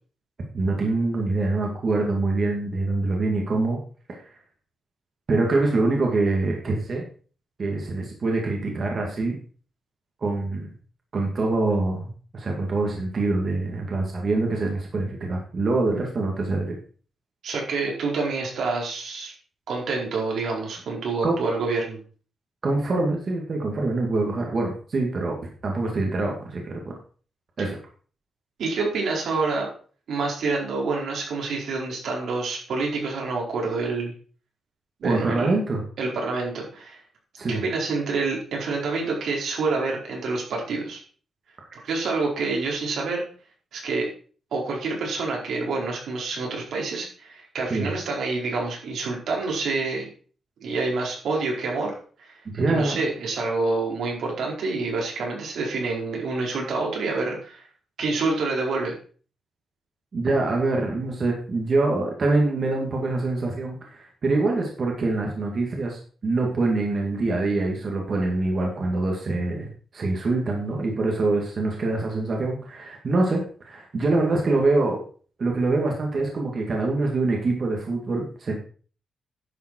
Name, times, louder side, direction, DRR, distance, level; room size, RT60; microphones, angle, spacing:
voice 1, 0.5-3.8 4.1-4.2 5.3-7.0 7.6-9.4 10.2-10.7 11.1-16.7 21.2-21.4 22.6-25.4 25.6-26.8 27.6-27.8 35.0-35.8 37.4-37.6 47.7-47.9 52.5-53.0 60.1-75.0 75.4-78.5, right 2 dB, 40° right, 0 dB, 2.2 m, -25 dB
voice 2, 17.4-19.3 19.7-22.0 27.6-27.7 28.6-29.7 30.1-34.1 35.0-35.6 36.0-37.0 37.5-41.0 41.8-43.2 43.7-44.1 44.5-50.1 50.6-51.9 52.7-57.6 58.0-58.9, right 3 dB, 75° right, -2 dB, 4.6 m, -27 dB
11.0 x 7.5 x 4.5 m, 0.41 s
wide cardioid pair, 155°, 0 cm